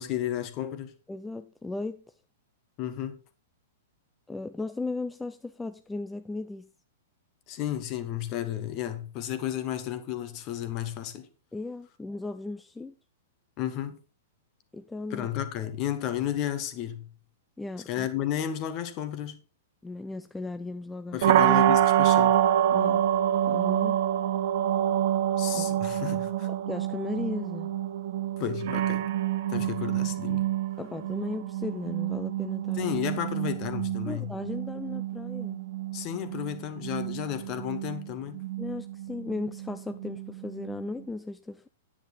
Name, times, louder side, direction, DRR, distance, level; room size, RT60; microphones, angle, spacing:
voice 1, 0.0-0.9 2.8-3.2 7.5-11.3 13.6-14.0 15.1-17.1 17.9-19.4 21.1-22.4 25.4-26.5 28.4-29.1 29.5-30.5 32.7-34.3 35.9-38.4, left 11 dB, 40° left, 1.6 m, -32 dB
voice 2, 1.1-2.1 4.3-6.7 11.5-12.9 14.7-15.3 17.6-18.1 19.8-21.2 22.7-23.1 23.4-24.0 25.5-25.7 26.5-27.8 30.8-32.9 34.0-35.6 38.6-41.7, left 2 dB, 10° left, 0.5 m, -36 dB
sound 1, 21.2-41.0, right 11 dB, 55° right, 0.8 m, -27 dB
9.9 x 8.9 x 4.1 m
figure-of-eight pair, 105°, 0 cm